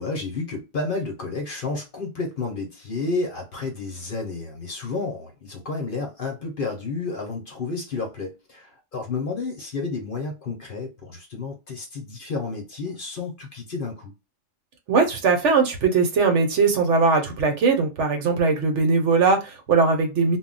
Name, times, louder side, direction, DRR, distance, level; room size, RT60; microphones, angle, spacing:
voice 1, 0.0-14.1, left 3 dB, 50° left, 0.8 m, -31 dB
voice 2, 14.9-20.4, right 4 dB, 70° right, 1.0 m, -20 dB
2.3 x 2.1 x 3.8 m
omnidirectional pair, 1.3 m